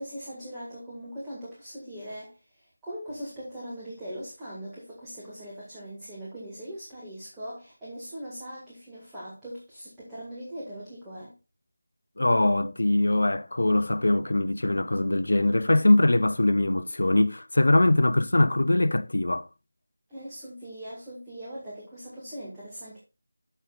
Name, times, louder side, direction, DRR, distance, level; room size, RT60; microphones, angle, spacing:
voice 1, 0.0-11.3 20.1-23.0, equal, 5° right, 1.9 m, -40 dB
voice 2, 12.2-19.5, left 1 dB, 60° left, 0.7 m, -22 dB
12.0 x 6.7 x 2.5 m
figure-of-eight pair, 165°, 0 cm